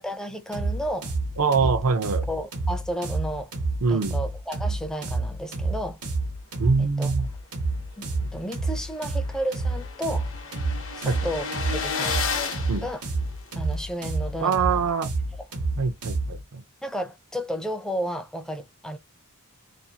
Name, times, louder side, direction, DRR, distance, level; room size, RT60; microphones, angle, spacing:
voice 1, 0.0-1.1 1.6-1.7 2.3-3.5 3.9-6.0 6.7-7.1 8.0-10.3 10.9-12.2 12.8-13.0 13.6-14.9 16.8-19.0, equal, 5° left, 0.4 m, -32 dB
sound 1, 0.5-16.4, right 3 dB, 85° right, 1.1 m, -29 dB
voice 2, 1.4-2.3 3.8-4.2 6.6-7.3 8.2-8.3 11.0-11.2 12.7-12.9 14.4-15.1 15.8-16.6, right 5 dB, 70° right, 0.5 m, -24 dB
sound 2, 8.2-8.3 8.6-8.7 8.9-13.7, left 5 dB, 60° left, 0.8 m, -33 dB
2.6 x 2.4 x 2.7 m
head